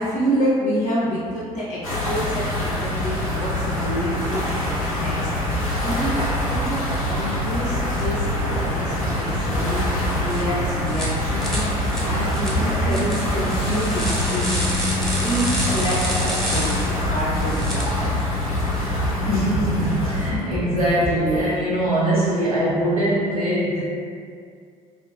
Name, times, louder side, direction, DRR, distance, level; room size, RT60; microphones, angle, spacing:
voice 1, 0.0-5.2 5.5-6.2 6.5-14.9 15.2-16.7 17.1-18.1, equal, 40° left, -6 dB, 0.5 m, -27 dB
sound 1, 1.8-20.3, left 2 dB, 90° left, 0.5 m, -25 dB
sound 2, 5.5-21.5, right 2 dB, 50° right, 0.6 m, -30 dB
sound 3, 10.3-10.4 10.8-11.1 11.4-17.8, equal, ahead, 0.8 m, -29 dB
voice 2, 19.3-23.8, equal, 85° right, -10 dB, 0.8 m, -22 dB
2.6 x 2.3 x 2.3 m, 2.2 s
figure-of-eight pair, 55°, 18 cm